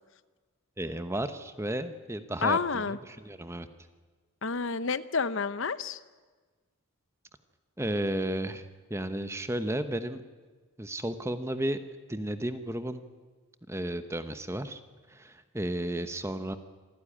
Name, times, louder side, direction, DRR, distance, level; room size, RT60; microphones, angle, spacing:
voice 1, 0.8-3.7 7.8-10.2 10.8-11.8 12.1-13.0 13.7-14.8 15.1-16.6, right 1 dB, 10° right, 10 dB, 1.0 m, -33 dB
voice 2, 2.4-3.0 4.4-6.0, left 5 dB, 60° left, 15 dB, 0.7 m, -29 dB
26.5 x 15.0 x 10.0 m, 1.4 s
head